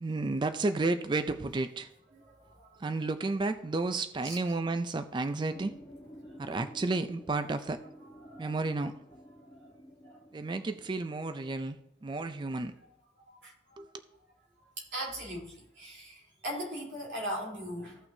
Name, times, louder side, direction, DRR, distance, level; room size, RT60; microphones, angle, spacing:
voice 1, 0.0-1.9 2.8-5.8 6.4-7.8 8.4-8.9 10.3-11.8 12.0-12.7 13.8-13.9, right 3 dB, 25° right, 10 dB, 0.3 m, -32 dB
voice 2, 2.4-2.8 4.2-4.4 8.2-8.5 10.0-10.2 13.3-13.8 14.9-18.0, equal, 70° right, -4 dB, 3.3 m, -39 dB
sound 1, 5.5-11.7, equal, 25° left, 1.5 m, -52 dB
15.5 x 5.9 x 2.7 m, 0.88 s
head